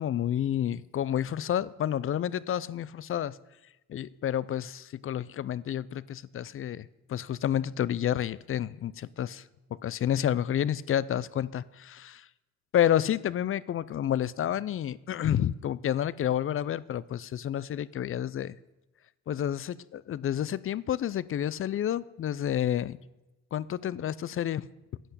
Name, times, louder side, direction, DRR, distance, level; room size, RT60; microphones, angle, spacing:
voice 1, 0.0-3.4 3.9-9.4 9.8-12.3 12.7-18.6 19.3-23.0 23.5-24.7, left 10 dB, 45° left, 19 dB, 0.5 m, -30 dB
10.0 x 8.3 x 6.8 m, 1.0 s
cardioid pair, 90°, 30 cm